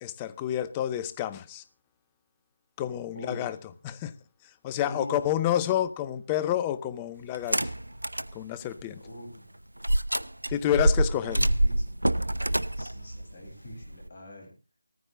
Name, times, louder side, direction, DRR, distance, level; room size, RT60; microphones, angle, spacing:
voice 1, 0.0-1.6 2.8-3.6 3.8-4.1 4.6-7.7 8.3-9.0 10.5-11.4, left 11 dB, 10° left, 0.6 m, -29 dB
voice 2, 3.1-3.6 4.8-5.2 9.0-9.5 10.9-11.9 12.8-14.5, left 1 dB, 30° left, 7.9 m, -42 dB
sound 1, 7.3-8.3 8.8-8.9 9.8-14.1, right 1 dB, 75° right, 0.8 m, -26 dB
15.5 x 14.5 x 3.7 m
figure-of-eight pair, 160°, 0 cm